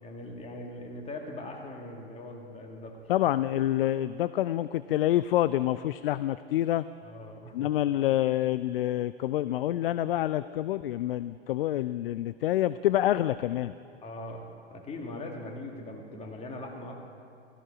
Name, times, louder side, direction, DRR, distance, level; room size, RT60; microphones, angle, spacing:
voice 1, 0.0-3.0 7.0-7.7 14.0-14.4 14.7-16.9, left 2 dB, 20° left, 1 dB, 2.4 m, -40 dB
voice 2, 3.1-6.8 7.5-13.7, left 13 dB, 60° left, 15 dB, 0.4 m, -27 dB
16.5 x 15.0 x 4.8 m, 2.7 s
figure-of-eight pair, 95°, 33 cm